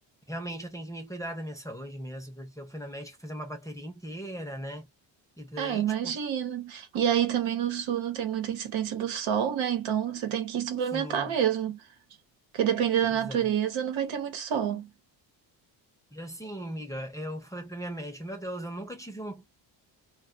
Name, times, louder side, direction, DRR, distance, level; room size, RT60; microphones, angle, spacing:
voice 1, 0.3-4.9 5.4-6.1 10.9-11.3 13.1-13.5 16.1-19.4, equal, 5° left, 0.6 m, -38 dB
voice 2, 5.6-11.8 12.5-14.9, right 9 dB, 75° right, 1.0 m, -28 dB
2.3 x 2.2 x 2.4 m
cardioid pair, 100°, 46 cm